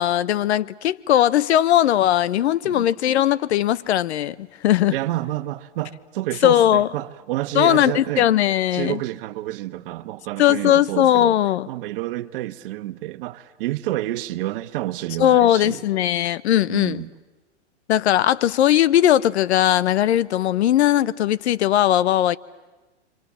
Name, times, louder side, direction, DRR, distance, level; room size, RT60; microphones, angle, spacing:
voice 1, 0.0-4.9 6.4-6.9 7.5-9.0 10.4-11.7 15.2-17.0 17.9-22.4, left 12 dB, 70° left, 0.9 m, -19 dB
voice 2, 4.9-8.3 8.7-11.4 11.7-15.8 16.6-17.1, right 16 dB, 50° right, 1.3 m, -29 dB
29.5 x 25.0 x 7.4 m
hypercardioid pair, 130°, 35 cm